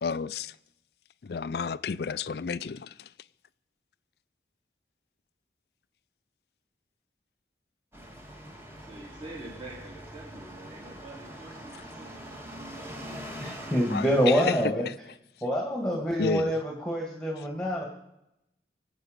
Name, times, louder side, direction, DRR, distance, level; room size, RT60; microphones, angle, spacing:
voice 1, 0.0-0.6 1.2-3.1 13.9-14.9 16.2-16.6, left 5 dB, 60° left, 0.4 m, -31 dB
sound 1, 7.9-14.6, equal, 15° right, 1.7 m, -43 dB
voice 2, 8.5-12.1 12.7-13.5, right 2 dB, 30° right, 3.3 m, -46 dB
voice 3, 13.4-14.8 15.4-17.8, equal, 5° left, 1.8 m, -26 dB
24.5 x 8.4 x 5.1 m
head